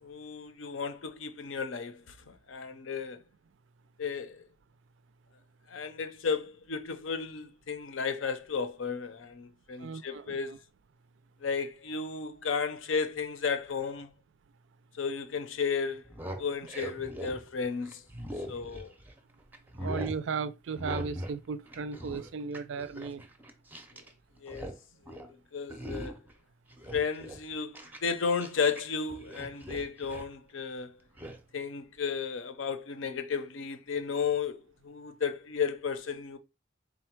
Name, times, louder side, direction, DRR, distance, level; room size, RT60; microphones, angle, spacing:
voice 1, 0.0-3.2 4.0-4.5 5.7-10.5 11.4-14.1 14.9-16.0 16.4-18.0 18.5-18.9 19.8-19.9 24.4-24.7 25.1-25.2 25.5-26.2 26.9-30.9 31.5-36.4, left 5 dB, 80° left, 0.6 m, -33 dB
voice 2, 9.8-10.6 19.8-23.3, right 5 dB, 70° right, 0.4 m, -36 dB
sound 1, 15.9-19.2 19.5-20.2 20.8-21.4 21.6-24.1 24.4-24.8 25.0-25.3 25.7-26.3 26.7-28.8 29.1-30.3 31.2-31.4, equal, 10° right, 0.5 m, -41 dB
3.9 x 2.1 x 4.4 m
head